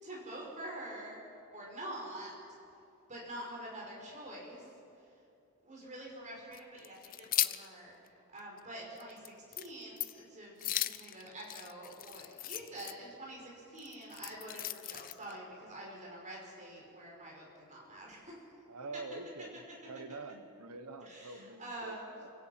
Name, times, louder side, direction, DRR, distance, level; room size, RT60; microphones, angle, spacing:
voice 1, 0.0-1.2 1.5-2.4 3.1-4.6 5.0-5.1 5.6-18.4 21.0-22.1, right 1 dB, 35° right, -3 dB, 5.6 m, -46 dB
sound 1, 6.5-7.7 8.1-8.2 8.6-8.7 9.0-9.3 9.5-9.7 10.0-10.2 10.6-12.9 13.8-15.3, left 13 dB, 40° left, 0.5 m, -36 dB
voice 2, 18.7-22.3, right 3 dB, 90° right, 10 dB, 1.2 m, -46 dB
26.5 x 16.5 x 5.9 m, 2.7 s
head